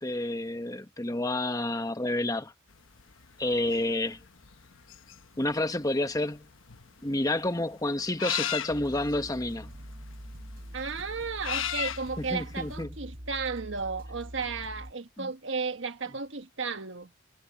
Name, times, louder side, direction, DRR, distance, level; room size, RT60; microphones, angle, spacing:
voice 1, 0.0-2.5 3.4-4.2 5.4-6.4 7.0-9.7 12.2-12.9 15.2-15.3, left 1 dB, 20° left, 1.1 m, -29 dB
sound 1, 2.7-12.8, left 10 dB, 85° left, 1.1 m, -37 dB
sound 2, 8.7-14.9, equal, 50° right, 4.8 m, -44 dB
voice 2, 10.7-17.1, right 4 dB, 70° right, 1.4 m, -34 dB
head